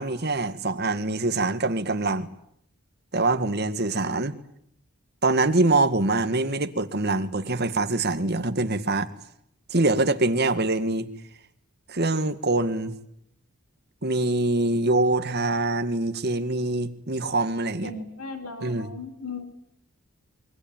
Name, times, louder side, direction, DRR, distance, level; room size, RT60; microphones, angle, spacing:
voice 1, 0.0-2.3 3.1-4.3 5.2-9.1 9.7-11.1 11.9-12.9 14.0-17.9 18.6-18.9, right 2 dB, 45° right, 9 dB, 1.9 m, -24 dB
voice 2, 17.8-19.5, left 3 dB, 85° left, 7 dB, 3.4 m, -37 dB
26.5 x 23.5 x 9.1 m, 0.74 s
head